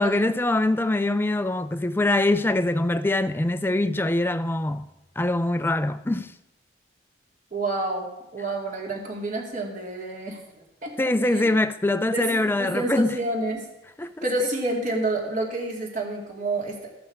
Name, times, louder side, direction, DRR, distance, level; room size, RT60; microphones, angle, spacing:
voice 1, 0.0-4.9 5.2-6.3 11.0-13.2 14.0-14.5, left 2 dB, 10° left, 0.4 m, -23 dB
voice 2, 7.5-10.4 10.8-10.9 11.2-11.5 12.1-13.6 14.2-16.9, right 2 dB, 45° right, 2.5 m, -29 dB
13.0 x 8.6 x 4.8 m
head